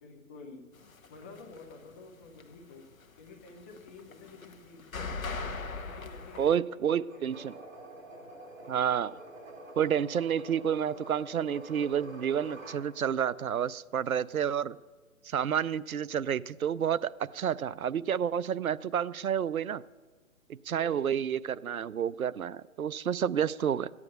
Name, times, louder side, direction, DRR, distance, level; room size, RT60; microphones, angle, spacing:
voice 1, 0.0-0.6 1.1-2.9 3.2-4.9 5.8-7.5 20.7-21.1, left 3 dB, 10° left, 1 dB, 0.5 m, -50 dB
sound 1, 0.8-1.9 2.2-6.6, left 4 dB, 75° left, 1.2 m, -40 dB
voice 2, 6.4-7.5 8.7-9.1 9.8-14.8 15.3-19.8 20.7-23.9, right 8 dB, 90° right, 19 dB, 0.6 m, -30 dB
sound 2, 7.1-12.8, right 1 dB, 60° right, 4.9 m, -47 dB
15.0 x 9.7 x 6.7 m, 1.4 s
figure-of-eight pair, 135°, 41 cm